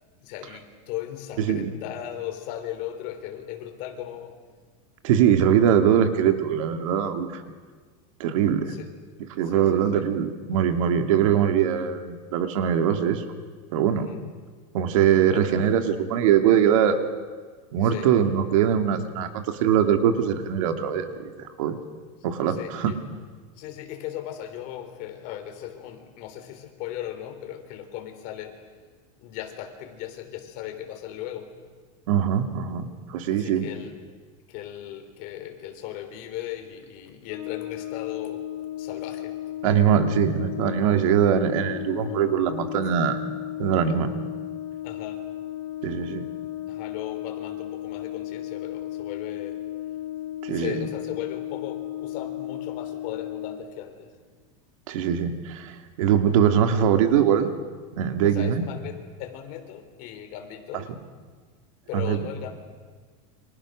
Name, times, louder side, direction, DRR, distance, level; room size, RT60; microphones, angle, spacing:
voice 1, 0.2-4.4 8.7-8.9 9.4-10.1 13.9-14.2 15.3-15.5 17.8-18.1 22.5-23.0 23.5-28.6 29.2-31.5 33.2-34.0 34.5-38.4 38.8-39.4 44.8-45.2 46.7-49.6 50.5-54.2 58.2-60.9 61.9-62.6, left 11 dB, 50° left, 6 dB, 3.9 m, -37 dB
voice 2, 5.0-7.4 8.2-8.7 9.4-13.2 13.7-14.1 14.7-17.0 17.7-21.8 22.2-22.9 32.1-33.7 39.6-43.2 43.6-44.1 45.8-46.3 50.4-50.9 54.9-57.5 57.9-58.6 61.9-62.2, right 9 dB, 70° right, 6 dB, 2.7 m, -22 dB
Brass instrument, 37.3-53.7, left 13 dB, 85° left, 2.6 m, -34 dB
30.0 x 25.5 x 6.6 m, 1.5 s
supercardioid pair, 155°, 18 cm